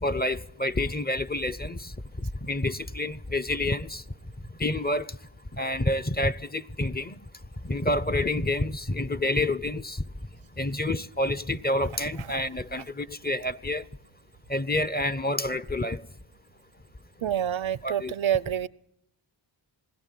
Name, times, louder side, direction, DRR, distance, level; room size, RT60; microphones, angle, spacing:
voice 1, 0.0-4.0 4.6-5.2 5.5-7.2 7.6-10.0 10.6-13.8 14.5-16.0 17.8-18.1, left 1 dB, 20° left, 0.8 m, -28 dB
voice 2, 17.2-18.7, right 10 dB, 75° right, 0.8 m, -27 dB
21.0 x 17.0 x 9.3 m
cardioid pair, 40°, 47 cm